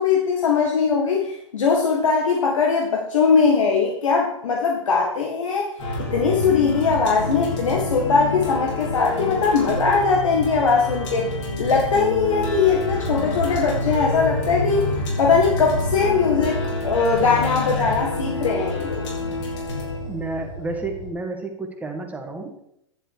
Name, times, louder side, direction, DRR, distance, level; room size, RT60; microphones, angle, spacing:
voice 1, 0.0-5.7 6.0-11.3 11.6-14.9 15.2-19.1, left 5 dB, 80° left, -1 dB, 1.8 m, -20 dB
sound 1, 5.8-21.1, left 2 dB, 65° left, 4.8 m, -27 dB
voice 2, 20.1-22.6, right 3 dB, 10° right, 2 dB, 2.0 m, -31 dB
11.0 x 7.7 x 4.8 m, 0.76 s
hypercardioid pair, 115°, 16 cm